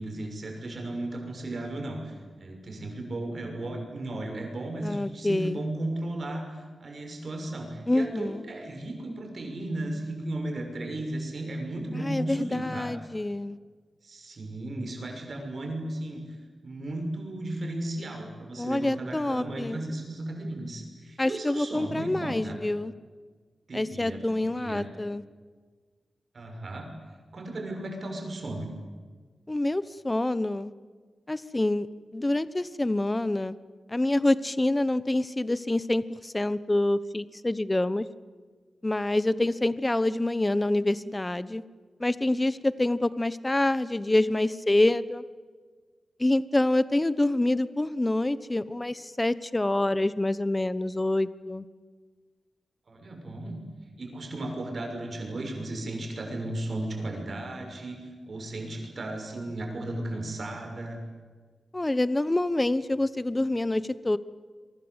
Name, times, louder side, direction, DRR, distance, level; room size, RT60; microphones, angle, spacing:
voice 1, 0.0-12.9 14.0-16.2 16.6-22.6 23.7-24.9 26.3-26.9 27.3-28.7 52.9-53.6 54.0-58.0 58.3-61.0, right 1 dB, 55° right, 3 dB, 6.6 m, -35 dB
voice 2, 4.8-5.6 7.9-8.4 11.9-13.6 18.6-19.8 21.2-22.9 23.7-25.2 29.5-30.7 31.3-31.9 32.1-33.6 33.9-38.0 38.8-41.6 42.0-45.2 46.2-51.6 61.7-64.2, left 1 dB, 20° left, 15 dB, 1.1 m, -26 dB
28.0 x 24.0 x 8.1 m, 1.5 s
wide cardioid pair, 95°, 0 cm